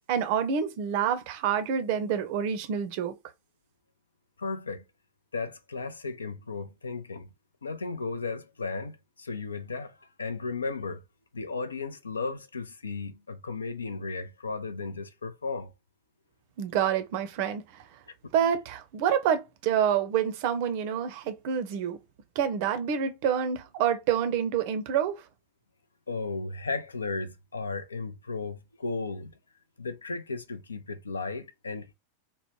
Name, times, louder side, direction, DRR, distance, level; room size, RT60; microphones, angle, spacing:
voice 1, 0.1-3.2 16.6-17.6 18.3-22.0 22.4-25.2, right 8 dB, 45° right, 0.5 m, -27 dB
voice 2, 4.4-4.8 5.3-7.3 7.6-11.0 11.3-15.7 26.1-29.3 29.8-31.9, left 4 dB, 75° left, 0.4 m, -35 dB
3.0 x 2.1 x 2.9 m
figure-of-eight pair, 90°, 0 cm